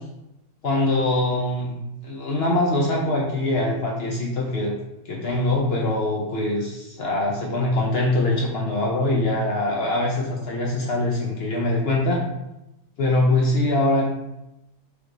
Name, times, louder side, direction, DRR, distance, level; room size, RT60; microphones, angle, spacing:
voice 1, 0.6-4.7 5.0-12.2 13.0-14.1, left 2 dB, 70° left, -2 dB, 0.6 m, -23 dB
3.3 x 3.1 x 3.7 m, 0.90 s
omnidirectional pair, 1.7 m